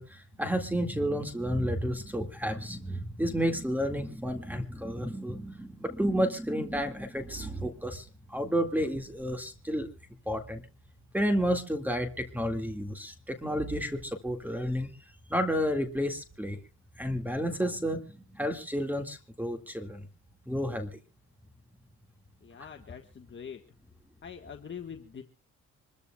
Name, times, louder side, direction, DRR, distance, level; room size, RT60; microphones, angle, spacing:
voice 1, 0.0-9.9 10.3-10.6 11.1-14.9 15.3-16.6 17.0-20.1 20.5-21.0, equal, 5° right, 5 dB, 2.1 m, -31 dB
voice 2, 22.4-23.6 24.2-25.2, left 7 dB, 40° left, 4 dB, 1.5 m, -43 dB
26.0 x 14.0 x 2.3 m, 0.34 s
cardioid pair, 90°, 30 cm